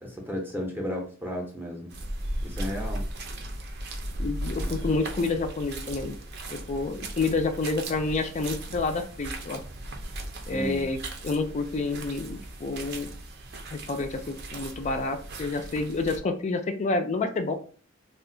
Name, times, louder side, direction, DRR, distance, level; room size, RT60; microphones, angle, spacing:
voice 1, 0.0-1.9 2.4-3.0 4.6-4.7 10.5-10.8, left 1 dB, 10° right, -1 dB, 0.6 m, -34 dB
sound 1, 1.9-16.2, right 1 dB, 55° right, 0.5 m, -37 dB
voice 2, 4.2-6.2 6.5-9.6 10.5-11.0 11.2-13.1 13.7-17.5, left 3 dB, 35° left, 7 dB, 0.4 m, -29 dB
2.4 x 2.3 x 3.7 m, 0.41 s
head